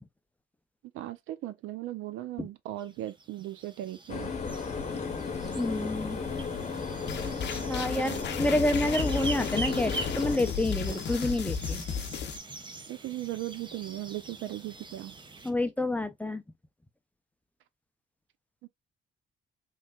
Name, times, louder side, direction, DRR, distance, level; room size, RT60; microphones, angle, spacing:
voice 1, 0.9-4.3 5.8-5.9 12.9-15.1 18.6-18.7, right 14 dB, 85° right, 0.5 m, -37 dB
sound 1, 2.8-15.5, right 3 dB, 25° right, 0.7 m, -43 dB
sound 2, 4.1-10.4, left 5 dB, 35° left, 0.9 m, -34 dB
voice 2, 5.5-6.2 7.7-11.9 15.4-16.4, left 1 dB, 5° left, 0.4 m, -28 dB
sound 3, 7.1-12.4, left 7 dB, 60° left, 0.6 m, -34 dB
3.3 x 3.2 x 2.2 m
cardioid pair, 90°, 20 cm